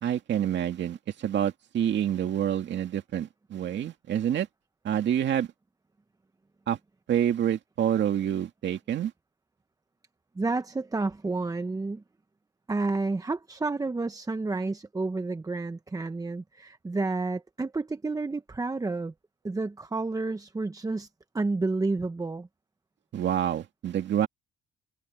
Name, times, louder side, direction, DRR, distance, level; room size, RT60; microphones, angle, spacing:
voice 1, 0.0-4.5 4.8-5.5 6.7-6.8 7.1-9.1 23.1-24.3, right 10 dB, 65° right, 2.2 m, -27 dB
voice 2, 10.3-12.0 12.7-19.1 19.4-21.1 21.3-22.5, right 3 dB, 15° right, 0.9 m, -30 dB
open air
cardioid pair, 90°, 20 cm